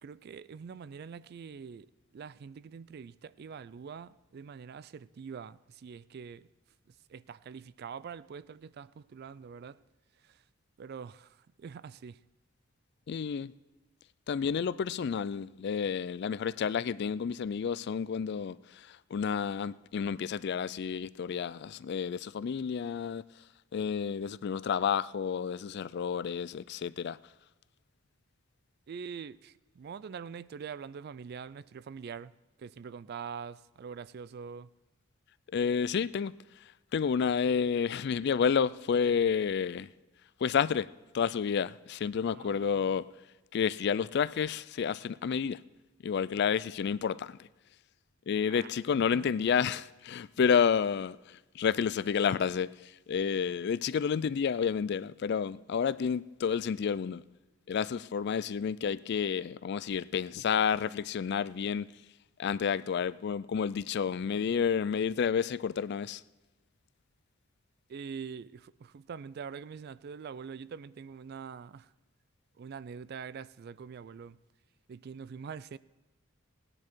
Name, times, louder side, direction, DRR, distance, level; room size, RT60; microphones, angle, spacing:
voice 1, 0.0-6.5 7.1-9.8 10.2-10.4 10.8-12.2 28.9-32.3 32.6-34.7 42.3-43.0 48.5-48.7 49.1-49.3 67.9-71.9 72.6-74.4 74.9-75.8, right 6 dB, 50° right, 0.3 m, -44 dB
voice 2, 13.1-13.5 14.3-23.2 23.7-27.2 35.5-36.3 36.9-39.9 40.4-43.1 43.5-45.6 46.0-47.4 48.3-57.2 57.7-61.9 62.4-66.2, left 7 dB, 50° left, 0.3 m, -30 dB
17.5 x 10.0 x 4.5 m
head